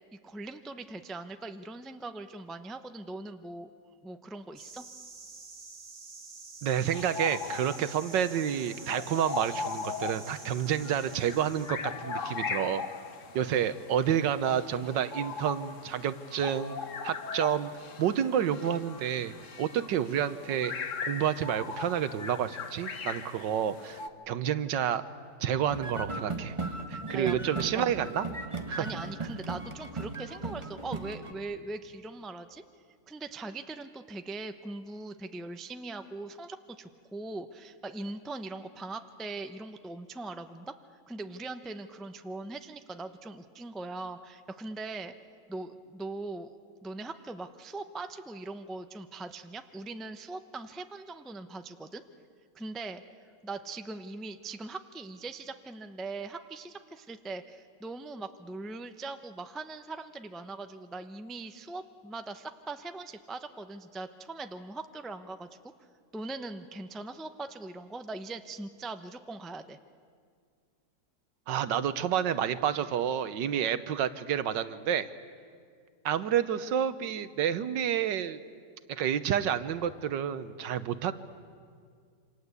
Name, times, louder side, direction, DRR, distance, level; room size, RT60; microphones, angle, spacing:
voice 1, 0.1-3.7 4.0-4.8 27.1-27.4 27.7-27.9 28.8-32.6 33.1-40.7 41.1-45.1 45.5-46.6 46.8-52.0 52.5-53.0 53.4-65.5 66.1-69.8, right 3 dB, ahead, 8 dB, 0.4 m, -41 dB
sound 1, 4.6-11.7, right 4 dB, 45° right, 2.4 m, -48 dB
voice 2, 6.6-12.8 13.3-16.8 17.0-17.7 18.0-20.7 21.0-24.0 24.3-25.0 25.4-26.5 26.9-28.2 28.7-28.9 71.5-75.1 76.0-78.4 78.9-81.1, right 9 dB, 80° right, 13 dB, 1.6 m, -29 dB
sound 2, 6.9-24.1, left 5 dB, 50° left, 1.4 m, -39 dB
sound 3, 25.7-31.3, right 3 dB, 20° right, 1.3 m, -37 dB
28.0 x 26.0 x 8.2 m, 2.1 s
omnidirectional pair, 1.9 m